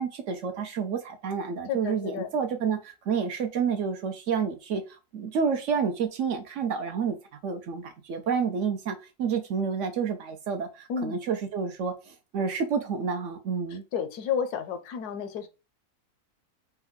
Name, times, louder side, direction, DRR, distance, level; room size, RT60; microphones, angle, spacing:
voice 1, 0.0-4.8 5.1-7.2 7.4-13.8, right 6 dB, 65° right, 0.8 m, -29 dB
voice 2, 1.7-2.3 10.9-11.2 13.9-15.5, left 7 dB, 75° left, 1.2 m, -31 dB
4.4 x 2.2 x 3.6 m
omnidirectional pair, 1.7 m